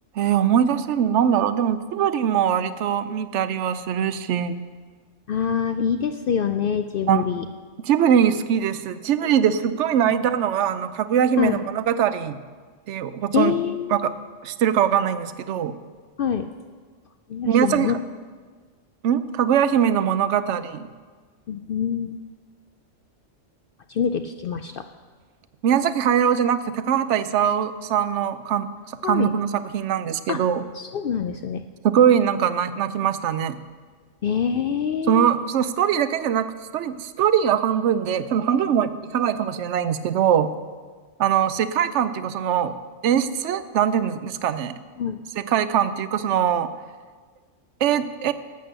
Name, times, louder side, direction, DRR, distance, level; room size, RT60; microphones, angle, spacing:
voice 1, 0.2-4.6 7.1-7.4 7.8-12.4 12.9-13.5 13.9-14.1 14.4-15.7 17.5-18.0 19.0-20.9 25.6-28.7 29.0-29.5 29.7-30.6 31.8-33.6 35.1-40.5 41.2-42.7 43.0-44.7 45.4-46.7 47.8-48.3, right 9 dB, 70° right, 13 dB, 0.9 m, -22 dB
voice 2, 5.3-7.4 10.1-10.2 11.4-11.6 13.3-14.0 16.2-16.4 17.3-17.9 21.5-22.2 23.9-24.8 29.0-29.3 30.3-30.4 30.7-31.6 34.2-35.3 45.0-45.2, left 7 dB, 65° left, 8 dB, 0.6 m, -25 dB
12.0 x 7.9 x 6.7 m, 1.5 s
omnidirectional pair, 1.3 m